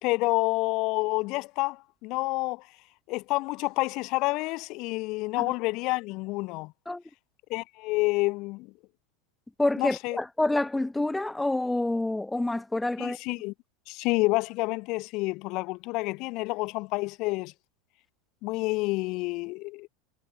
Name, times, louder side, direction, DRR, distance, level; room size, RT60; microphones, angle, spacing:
voice 1, 0.0-2.6 3.1-6.7 7.5-8.7 9.8-10.2 13.0-13.5 13.9-17.5 18.4-19.9, left 23 dB, 55° left, 2.0 m, -29 dB
voice 2, 9.6-13.2, left 2 dB, 5° left, 2.6 m, -27 dB
supercardioid pair, 120°, 0 cm